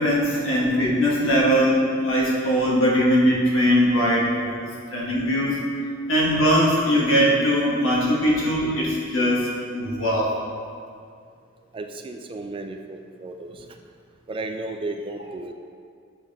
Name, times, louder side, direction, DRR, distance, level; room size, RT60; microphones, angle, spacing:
voice 1, 0.0-4.5 4.9-5.6 6.1-10.4, equal, 80° left, -4 dB, 1.4 m, -21 dB
voice 2, 11.7-13.7 14.3-15.5, right 2 dB, 25° right, 5 dB, 0.3 m, -34 dB
7.8 x 4.3 x 3.5 m, 2.2 s
head